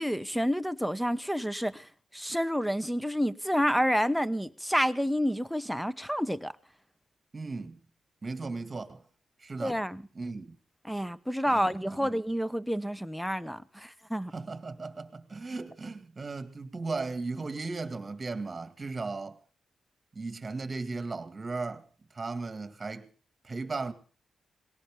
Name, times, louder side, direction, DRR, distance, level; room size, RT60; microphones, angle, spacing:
voice 1, 0.0-1.9 2.1-6.5 9.6-10.0 10.8-14.3, equal, ahead, 0.8 m, -29 dB
voice 2, 7.3-7.8 8.2-9.0 9.4-9.8 10.2-10.6 11.5-11.6 11.9-12.1 14.3-19.4 20.2-21.9 22.1-23.1 23.4-23.9, right 3 dB, 25° right, 2.0 m, -36 dB
19.5 x 17.5 x 3.6 m
wide cardioid pair, 120°, 0 cm